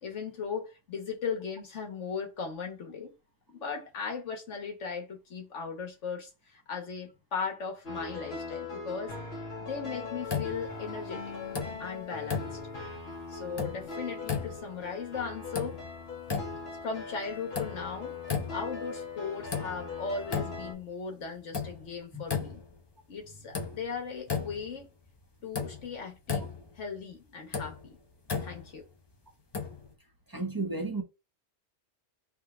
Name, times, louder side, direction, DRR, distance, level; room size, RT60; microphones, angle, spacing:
voice 1, 0.0-3.1 3.5-9.1 9.6-11.3 11.8-12.6 13.3-15.8 16.8-18.1 18.5-22.6 23.1-24.9 25.4-26.5 26.8-28.0 28.4-28.8, left 5 dB, 80° left, 1.5 m, -37 dB
sound 1, 7.8-20.7, left 4 dB, 60° left, 1.3 m, -40 dB
sound 2, 10.3-11.0 11.4-12.0 12.3-12.9 13.3-13.9 14.2-14.9 15.3-16.0 16.3-16.8 17.3-18.0 18.3-18.9 19.3-20.0 20.2-20.9 21.2-22.8 23.2-23.3 23.5-24.8 25.1-25.2 25.5-26.8 27.3-28.8 29.5-29.9, left 5 dB, 35° left, 0.4 m, -35 dB
voice 2, 30.3-31.0, right 3 dB, 20° right, 0.8 m, -32 dB
3.6 x 2.8 x 4.7 m
omnidirectional pair, 1.2 m